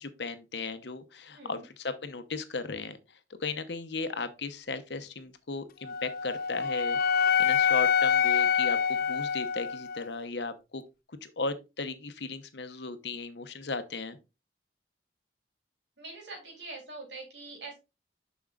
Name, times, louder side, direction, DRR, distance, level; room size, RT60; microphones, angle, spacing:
voice 1, 0.0-3.0 3.4-7.0 7.4-10.8 11.1-14.2, left 3 dB, 70° left, 0.9 m, -36 dB
voice 2, 1.3-1.7 16.0-17.8, right 3 dB, 85° right, 3.3 m, -43 dB
Wind instrument woodwind instrument, 5.8-10.1, left 7 dB, 55° left, 0.4 m, -26 dB
7.2 x 6.1 x 2.4 m
head